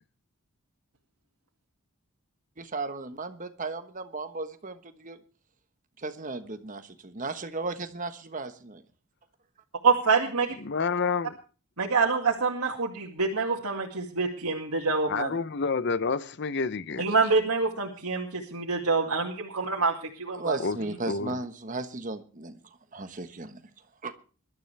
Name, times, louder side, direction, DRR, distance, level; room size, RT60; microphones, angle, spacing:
voice 1, 2.6-5.2 6.0-8.8 20.4-22.6 22.9-23.6 24.0-24.1, right 3 dB, 35° right, 1.3 m, -35 dB
voice 2, 9.8-10.6 11.8-15.3 17.0-21.0, right 4 dB, 85° right, 2.2 m, -26 dB
voice 3, 10.6-11.4 15.1-17.0 20.6-20.8 21.1-21.4, left 4 dB, 50° left, 0.7 m, -29 dB
21.5 x 12.5 x 3.4 m
head